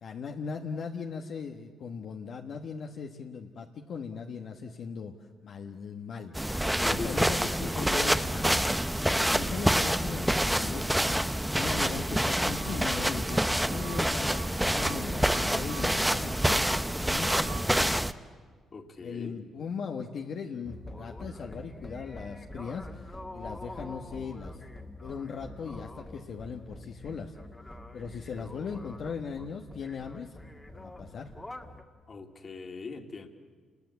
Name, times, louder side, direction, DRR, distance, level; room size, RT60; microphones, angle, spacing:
voice 1, 0.0-5.1 5.4-6.3 6.6-18.0 19.0-24.6 25.0-27.3 27.9-30.4 30.7-31.3, left 5 dB, 65° left, 1 dB, 1.4 m, -39 dB
sound 1, 6.3-18.1, right 1 dB, 5° right, 0.8 m, -27 dB
voice 2, 6.7-8.0 18.7-19.4 32.1-33.3, left 4 dB, 40° left, 4 dB, 2.4 m, -40 dB
sound 2, 12.3-17.7, right 10 dB, 80° right, 0.9 m, -48 dB
sound 3, 20.6-31.8, left 1 dB, 15° left, 1.9 m, -45 dB
29.0 x 20.5 x 8.4 m, 1.5 s
cardioid pair, 90°, 0 cm